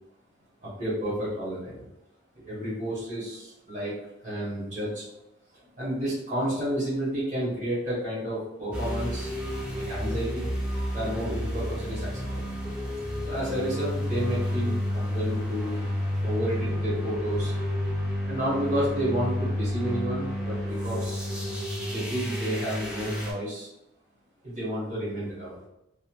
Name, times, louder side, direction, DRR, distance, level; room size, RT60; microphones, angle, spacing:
voice 1, 0.6-1.8 2.3-4.0 4.2-5.0 5.5-9.4 9.7-10.5 10.9-12.5 13.3-15.9 16.2-17.5 18.3-21.3 21.9-23.7 24.4-25.6, equal, 35° right, -9 dB, 1.1 m, -31 dB
sound 1, 8.7-23.3, equal, 5° right, 0.3 m, -30 dB
3.0 x 2.4 x 2.2 m, 0.87 s
head